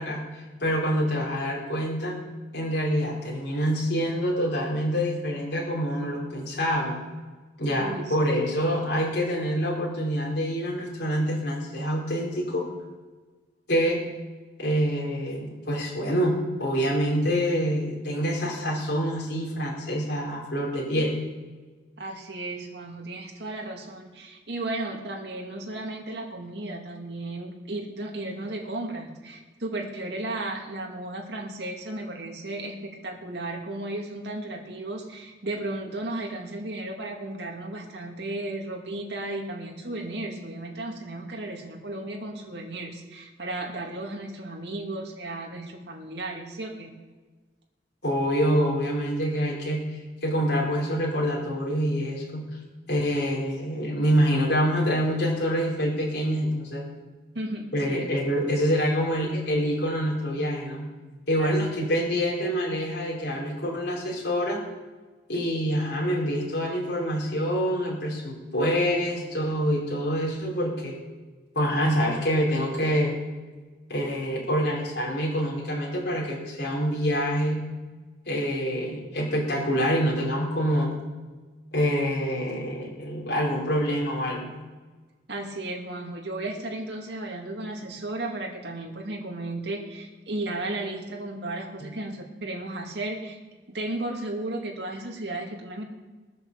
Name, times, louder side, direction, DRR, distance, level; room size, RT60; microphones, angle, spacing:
voice 1, 0.0-2.2 2.5-7.0 7.6-12.6 13.7-14.0 14.6-21.2 48.0-52.6 52.9-56.8 57.7-60.9 61.3-64.6 65.3-71.0 71.5-73.2 73.9-77.6 78.3-80.9 81.7-84.5 91.8-91.9, equal, 65° left, -4 dB, 3.9 m, -26 dB
voice 2, 7.8-8.2 22.0-46.9 57.3-58.1 61.4-61.6 85.3-93.4 93.7-95.8, right 2 dB, 70° right, 1 dB, 2.3 m, -34 dB
19.5 x 7.8 x 7.2 m, 1.3 s
head